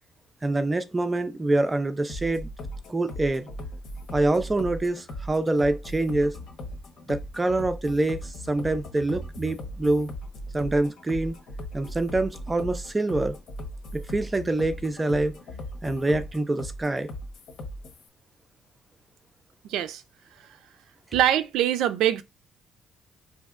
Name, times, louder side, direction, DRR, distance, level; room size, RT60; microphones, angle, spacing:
voice 1, 0.4-2.5 2.9-3.5 4.1-6.4 7.1-10.1 10.5-11.4 11.7-13.4 13.9-15.3 15.8-17.1, right 2 dB, 15° right, 0.4 m, -25 dB
sound 1, 2.1-18.1, equal, 70° left, 1.1 m, -38 dB
voice 2, 19.6-20.0 21.1-22.2, right 11 dB, 85° right, 0.4 m, -23 dB
5.2 x 2.8 x 2.4 m
cardioid pair, 145°, 0 cm